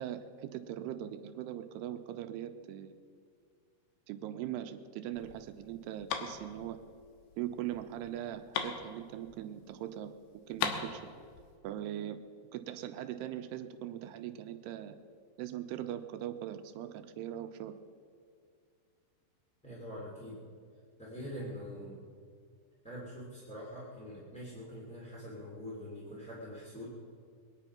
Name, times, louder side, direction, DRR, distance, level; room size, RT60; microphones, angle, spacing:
voice 1, 0.0-3.0 4.1-6.8 7.4-10.2 10.5-11.0 11.6-12.2 12.5-15.0 15.4-17.7, right 11 dB, 85° right, 8 dB, 2.6 m, -40 dB
sound 1, 5.1-9.7 10.0-10.1 10.3-11.6, left 7 dB, 85° left, 3.3 m, -39 dB
voice 2, 19.6-20.4 21.0-22.0 22.8-26.9, equal, ahead, -7 dB, 1.7 m, -44 dB
22.5 x 9.9 x 5.8 m, 2.2 s
omnidirectional pair, 4.8 m